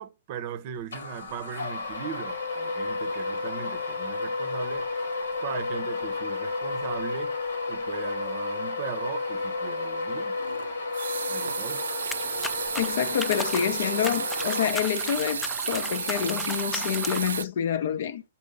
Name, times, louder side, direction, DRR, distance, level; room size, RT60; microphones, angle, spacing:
voice 1, 0.0-4.9 5.4-7.4 7.7-10.4 11.3-11.9, right 9 dB, 40° right, 0.7 m, -38 dB
sound 1, 0.9-15.2, left 3 dB, 90° left, 1.8 m, -32 dB
sound 2, 2.9-4.5 4.8-5.1 5.4-5.5 10.1-17.4, right 6 dB, 85° right, 0.4 m, -33 dB
sound 3, 12.1-17.4, left 2 dB, 5° left, 0.4 m, -37 dB
voice 2, 12.8-18.2, left 9 dB, 55° left, 0.7 m, -27 dB
5.5 x 4.3 x 5.3 m
hypercardioid pair, 155°, 0 cm